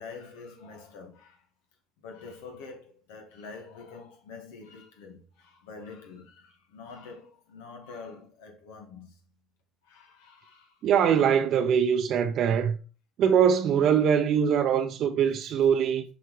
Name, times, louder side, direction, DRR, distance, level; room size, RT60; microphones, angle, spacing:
voice 1, 0.0-1.4 2.0-9.1 9.8-11.1 12.6-12.7, left 4 dB, 80° left, 1.7 m, -46 dB
voice 2, 10.8-12.8 13.2-16.0, right 8 dB, 60° right, 0.7 m, -22 dB
7.8 x 4.7 x 3.2 m
hypercardioid pair, 75°, 0 cm